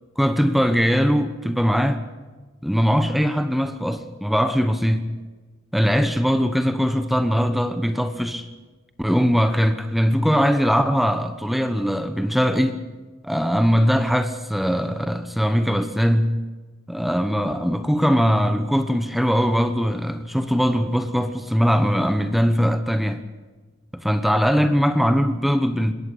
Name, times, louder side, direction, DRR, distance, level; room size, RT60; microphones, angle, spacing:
voice 1, 0.2-2.0 2.6-5.1 5.7-8.4 9.0-12.8 13.2-16.4 16.9-23.2 23.9-25.9, equal, ahead, 1.0 m, -21 dB
21.5 x 17.0 x 8.5 m
head